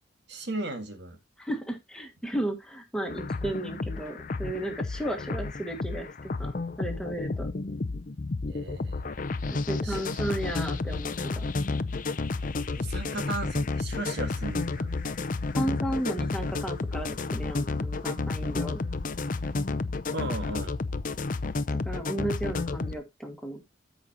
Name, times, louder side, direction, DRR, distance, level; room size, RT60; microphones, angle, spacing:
voice 1, 0.3-1.2 8.5-9.0 9.8-10.2 12.7-14.9 20.1-20.7, right 2 dB, 60° right, 1.8 m, -36 dB
voice 2, 1.4-6.5 6.8-7.5 9.5-11.4 15.5-18.8 21.8-23.6, right 1 dB, 5° left, 1.7 m, -34 dB
sound 1, 3.1-22.9, left 3 dB, 45° left, 0.6 m, -31 dB
13.5 x 5.2 x 2.9 m
head